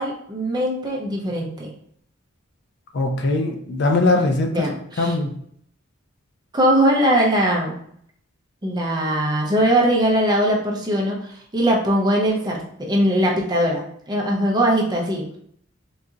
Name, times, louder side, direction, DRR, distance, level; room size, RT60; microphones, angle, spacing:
voice 1, 0.0-1.7 4.5-5.2 6.5-7.8 8.6-15.3, right 1 dB, 20° right, -2 dB, 0.6 m, -21 dB
voice 2, 2.9-4.6 5.0-5.3, left 2 dB, 50° left, 4 dB, 0.4 m, -20 dB
3.8 x 2.7 x 2.4 m, 0.66 s
head